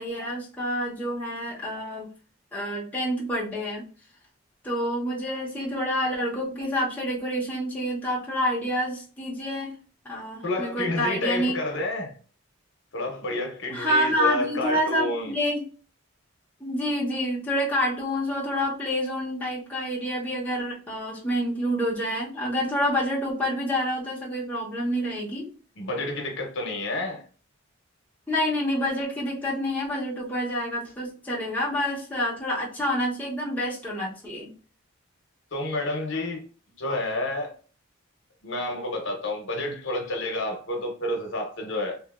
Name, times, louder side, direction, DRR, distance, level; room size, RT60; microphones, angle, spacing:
voice 1, 0.0-2.1 2.5-3.8 4.6-9.7 10.0-11.6 13.7-15.7 16.6-25.5 28.3-34.5, equal, 10° left, 0.8 m, -28 dB
voice 2, 10.4-12.2 12.9-15.3 25.8-27.2 35.5-36.4 36.8-37.5 38.4-42.0, left 1 dB, 65° left, 0.8 m, -29 dB
2.8 x 2.7 x 2.4 m
head